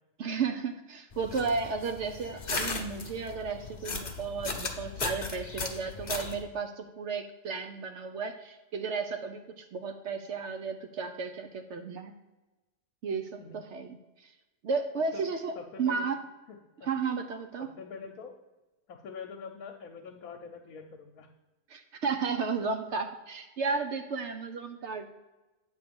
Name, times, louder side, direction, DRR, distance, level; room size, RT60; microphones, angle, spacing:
voice 1, 0.2-12.2 13.0-14.3 14.6-16.2 16.8-17.7 21.7-25.1, right 5 dB, 60° right, 6 dB, 0.9 m, -33 dB
sound 1, 1.1-6.4, left 4 dB, 35° left, 0.8 m, -37 dB
voice 2, 15.5-16.1 16.5-16.9 17.6-18.3 18.9-21.3, left 5 dB, 75° left, 2 dB, 1.2 m, -44 dB
8.9 x 3.7 x 6.9 m, 1.1 s
omnidirectional pair, 1.5 m